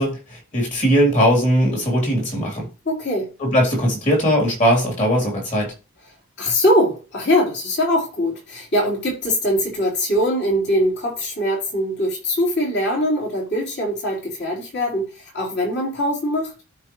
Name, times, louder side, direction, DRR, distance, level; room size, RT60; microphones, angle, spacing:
voice 1, 0.0-2.7 3.4-5.7, equal, 35° left, -1 dB, 3.0 m, -19 dB
voice 2, 2.9-3.3 6.4-16.5, equal, 50° left, -3 dB, 3.7 m, -22 dB
13.0 x 4.4 x 3.1 m, 0.31 s
head